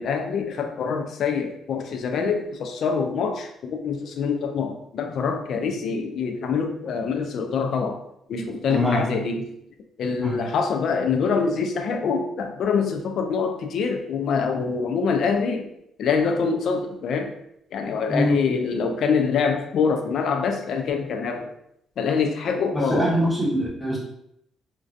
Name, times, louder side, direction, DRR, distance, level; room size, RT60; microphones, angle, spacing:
voice 1, 0.0-8.0 8.3-9.5 10.0-15.7 16.0-17.3 17.7-21.5 22.0-23.1, left 5 dB, 70° left, 5 dB, 0.3 m, -25 dB
voice 2, 8.7-9.0 10.2-10.4 18.1-18.4 22.7-24.0, equal, 5° left, -6 dB, 1.0 m, -22 dB
2.3 x 2.2 x 2.5 m, 0.76 s
cardioid pair, 90°, 0 cm